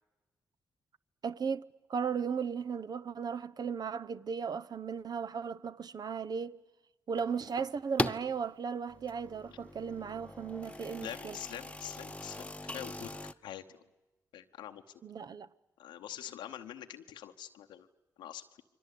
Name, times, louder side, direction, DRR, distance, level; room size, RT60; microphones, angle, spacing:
voice 1, 1.2-6.6 7.1-11.4 15.0-15.5, right 6 dB, 60° right, 0.8 m, -36 dB
sound 1, 7.2-8.3 8.9-13.3, left 2 dB, 15° left, 1.0 m, -40 dB
voice 2, 11.0-13.2 13.4-13.6 14.3-14.8 15.8-17.9 18.2-18.4, left 11 dB, 85° left, 0.9 m, -44 dB
29.0 x 23.0 x 8.4 m
supercardioid pair, 40°, 8 cm